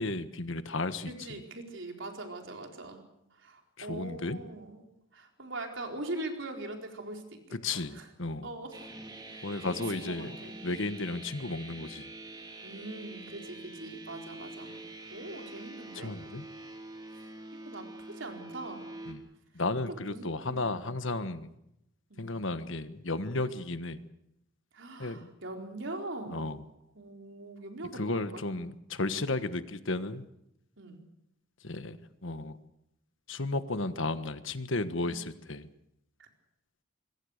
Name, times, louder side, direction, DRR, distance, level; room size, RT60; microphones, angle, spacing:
voice 1, 0.0-1.1 3.8-4.4 7.6-8.5 9.4-10.3 10.6-12.1 15.9-16.4 19.1-19.2 19.5-21.5 22.2-24.0 25.0-25.2 26.3-26.6 27.9-30.2 31.6-32.6 33.3-35.7, left 2 dB, 65° left, 12 dB, 1.4 m, -33 dB
voice 2, 1.1-3.0 3.3-4.8 5.1-8.1 8.4-8.9 9.3-10.6 12.6-14.8 15.1-16.1 17.1-19.0 20.1-20.9 22.1-22.3 24.7-26.4 26.9-28.4 30.8-31.0 35.0-35.2 36.2-36.3, right 2 dB, 60° right, 3 dB, 4.4 m, -42 dB
sound 1, 8.7-19.1, right 2 dB, 20° right, 3.1 m, -46 dB
25.5 x 22.5 x 6.6 m, 0.81 s
head